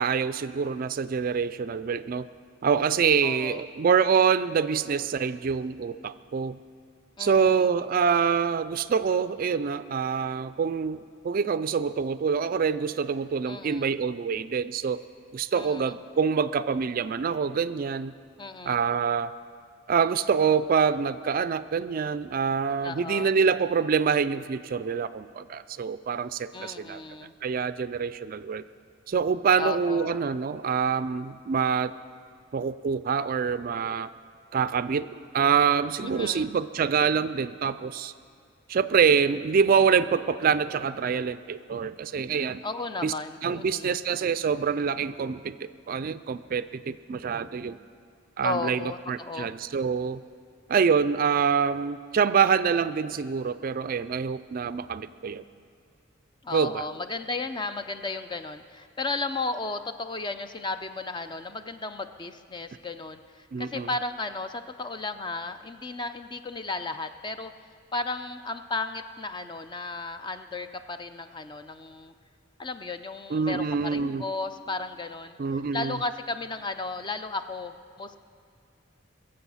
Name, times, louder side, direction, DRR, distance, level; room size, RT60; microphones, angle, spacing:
voice 1, 0.0-2.3 2.6-6.6 7.2-15.0 15.3-18.1 18.7-19.3 19.9-27.0 27.4-28.6 29.1-31.9 32.5-34.1 34.5-38.1 38.7-42.6 43.0-43.1 43.4-45.5 45.9-47.8 48.4-50.2 50.7-55.4 56.5-56.8 63.5-63.9 73.3-74.2 75.4-76.0, right 6 dB, 45° right, 14 dB, 0.3 m, -25 dB
voice 2, 3.2-3.6 7.2-7.7 13.5-14.0 15.6-15.9 18.4-18.8 22.8-23.3 26.5-27.3 29.6-30.2 36.0-36.5 42.6-43.9 48.4-49.5 56.4-67.5 67.9-72.1 72.6-75.4 75.7-78.2, left 3 dB, 25° left, 9 dB, 0.4 m, -34 dB
22.0 x 7.7 x 5.6 m, 2.3 s
head